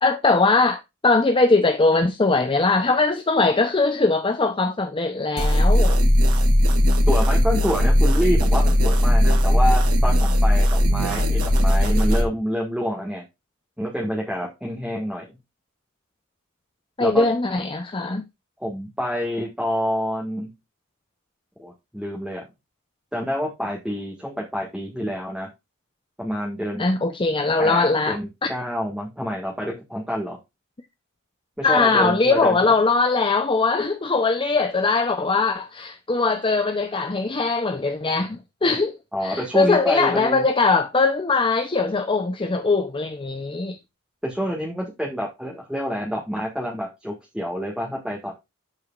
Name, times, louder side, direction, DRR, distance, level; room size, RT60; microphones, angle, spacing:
voice 1, 0.0-6.0 17.0-18.2 26.8-28.5 31.6-39.0 39.2-43.8, left 3 dB, 25° left, 0.6 m, -21 dB
sound 1, 5.4-12.2, equal, 85° right, 2.3 m, -18 dB
voice 2, 7.1-13.2 13.8-15.3 17.0-17.3 18.6-20.5 21.6-22.5 23.1-25.5 26.2-26.8 27.6-30.4 31.6-32.7 39.1-40.4 44.2-48.3, equal, 5° right, 1.8 m, -27 dB
13.0 x 4.9 x 2.4 m
head